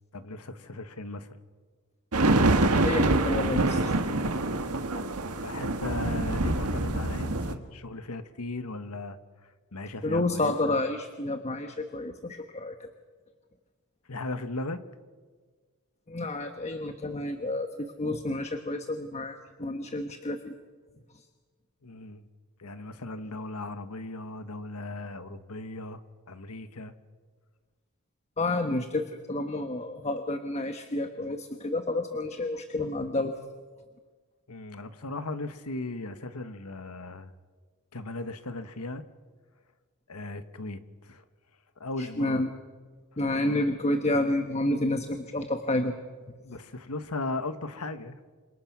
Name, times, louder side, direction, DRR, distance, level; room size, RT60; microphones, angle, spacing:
voice 1, 0.1-1.4 5.4-9.2 9.4-10.8 14.1-14.8 16.7-16.8 21.8-22.2 22.6-26.0 26.3-26.9 34.5-37.3 37.9-39.0 40.1-41.2 41.8-42.4 46.4-48.2, left 2 dB, 85° left, 10 dB, 1.5 m, -37 dB
sound 1, 2.1-7.5, right 2 dB, 80° right, 1.7 m, -25 dB
voice 2, 2.8-4.0 10.0-12.9 16.1-20.5 28.4-33.3 42.0-42.5 43.2-45.9, left 2 dB, 30° left, 7 dB, 1.2 m, -30 dB
28.5 x 26.0 x 6.1 m, 1.5 s
head